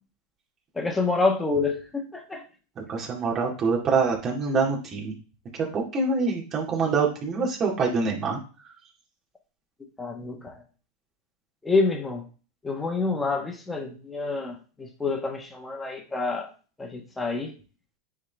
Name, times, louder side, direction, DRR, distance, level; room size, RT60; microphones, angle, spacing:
voice 1, 0.7-2.4 10.0-10.6 11.6-12.2 12.6-16.5 16.8-17.5, left 3 dB, 10° left, 3 dB, 1.4 m, -27 dB
voice 2, 2.8-5.2 5.7-8.4, right 4 dB, 35° right, -1 dB, 2.3 m, -25 dB
9.5 x 3.8 x 3.5 m, 0.37 s
hypercardioid pair, 115°, 0 cm